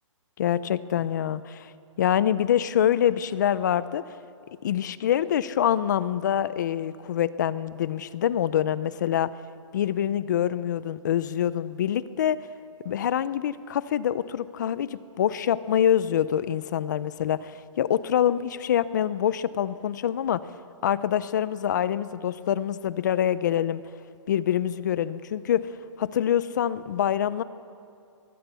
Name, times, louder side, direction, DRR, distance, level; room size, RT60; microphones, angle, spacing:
voice 1, 0.4-1.7 2.0-4.0 4.6-9.3 9.7-12.4 12.8-20.4 20.8-23.8 24.3-27.4, left 10 dB, 35° left, 16 dB, 0.6 m, -25 dB
22.5 x 21.0 x 6.9 m, 2.4 s
hypercardioid pair, 170°, 16 cm